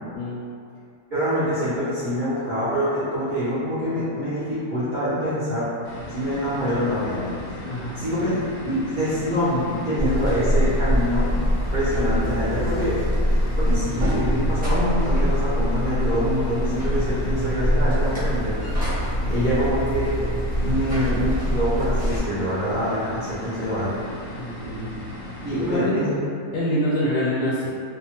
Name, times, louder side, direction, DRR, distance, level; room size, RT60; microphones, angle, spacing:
voice 1, 1.1-5.7 6.1-7.3 8.0-8.4 8.6-11.4 11.7-13.0 13.6-18.5 19.2-20.3 20.6-23.9 25.4-26.2, equal, 60° right, -14 dB, 0.5 m, -25 dB
sound 1, 5.8-25.8, left 1 dB, 70° left, 0.8 m, -37 dB
voice 2, 7.6-8.0 19.2-19.5 24.4-24.9 25.6-26.0 26.5-27.7, left 1 dB, 90° left, -9 dB, 1.2 m, -26 dB
Buzz, 10.0-22.2, equal, 10° right, 0.6 m, -24 dB
2.8 x 2.2 x 2.8 m, 2.4 s
omnidirectional pair, 1.7 m